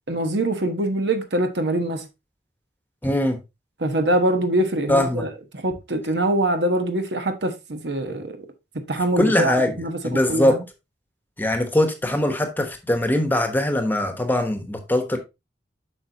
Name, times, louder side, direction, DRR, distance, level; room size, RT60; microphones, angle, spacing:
voice 1, 0.1-2.1 3.8-8.5 8.7-10.6, right 1 dB, 70° right, 1.1 m, -24 dB
voice 2, 3.0-3.4 4.9-5.3 9.2-9.7 10.0-10.6 11.4-15.2, left 1 dB, 10° left, 1.1 m, -21 dB
8.0 x 5.5 x 2.8 m
head